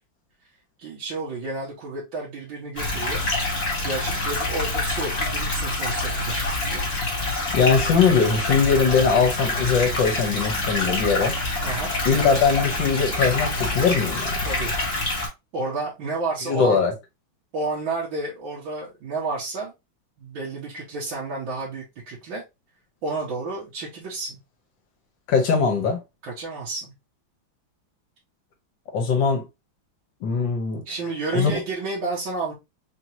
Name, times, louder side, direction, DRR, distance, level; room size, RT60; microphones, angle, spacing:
voice 1, 0.8-3.3 3.8-6.9 11.6-12.0 14.5-14.7 15.5-16.8 17.5-19.7 20.2-22.4 23.0-24.4 26.2-26.9 30.9-32.5, right 3 dB, 80° right, 1.9 m, -31 dB
sound 1, 2.8-15.3, left 2 dB, 35° left, 1.5 m, -26 dB
voice 2, 7.5-11.4 12.1-14.4 16.5-16.9 25.3-26.0 28.9-29.5 30.2-30.8 31.3-31.6, left 5 dB, 70° left, 1.8 m, -21 dB
4.4 x 2.9 x 2.9 m
omnidirectional pair, 2.1 m